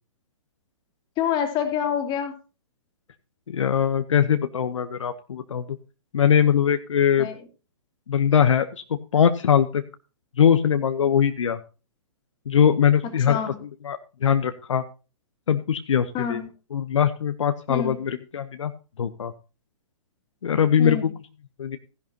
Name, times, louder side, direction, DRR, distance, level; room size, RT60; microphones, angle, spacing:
voice 1, 1.2-2.3 7.2-7.4 13.3-13.6 16.1-16.5 17.7-17.9 20.8-21.1, left 8 dB, 30° left, 6 dB, 2.5 m, -26 dB
voice 2, 3.5-5.6 6.1-7.3 8.1-8.8 9.1-9.8 10.4-11.6 12.5-14.8 15.5-16.4 16.7-18.7 19.0-19.3 20.4-21.1 21.6-21.8, left 8 dB, 75° left, 9 dB, 0.9 m, -21 dB
15.5 x 11.0 x 2.8 m, 0.33 s
hypercardioid pair, 125°, 16 cm